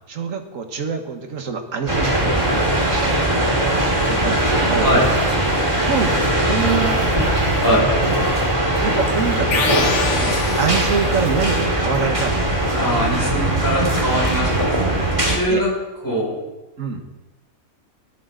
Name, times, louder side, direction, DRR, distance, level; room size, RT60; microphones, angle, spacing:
voice 1, 0.1-3.7 4.0-4.9 5.8-7.5 8.8-12.7 15.5-15.6 16.8-17.0, right 5 dB, 60° right, 5 dB, 1.7 m, -26 dB
sound 1, 1.9-15.4, right 1 dB, 20° right, 2.5 m, -20 dB
sound 2, 9.5-11.4, left 4 dB, 55° left, 1.5 m, -24 dB
voice 2, 12.8-14.5 15.3-15.7 16.0-16.4, equal, 15° left, -5 dB, 6.1 m, -21 dB
17.0 x 11.5 x 3.9 m, 1.1 s
omnidirectional pair, 1.5 m